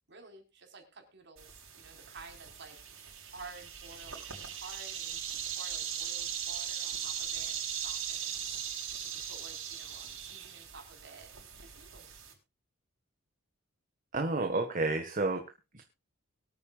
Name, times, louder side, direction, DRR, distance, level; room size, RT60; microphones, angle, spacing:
voice 1, 0.1-5.2 5.5-11.3 11.5-12.2, right 4 dB, 55° right, 2 dB, 4.8 m, -52 dB
sound 1, 1.4-12.3, right 8 dB, 70° right, 5.8 m, -39 dB
voice 2, 14.1-15.4 15.7-15.8, right 2 dB, 40° right, 4 dB, 1.6 m, -30 dB
24.0 x 9.0 x 2.5 m, 0.28 s
head